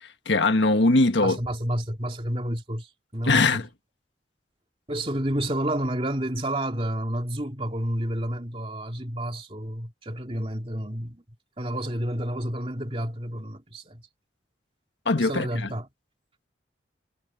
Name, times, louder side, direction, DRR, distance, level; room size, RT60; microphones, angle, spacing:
voice 1, 0.0-1.4 3.2-3.7 15.0-15.7, left 2 dB, 80° left, 1.5 m, -21 dB
voice 2, 1.2-2.9 3.1-3.6 4.9-11.2 11.6-14.0 15.2-15.9, right 1 dB, 30° right, 2.9 m, -30 dB
head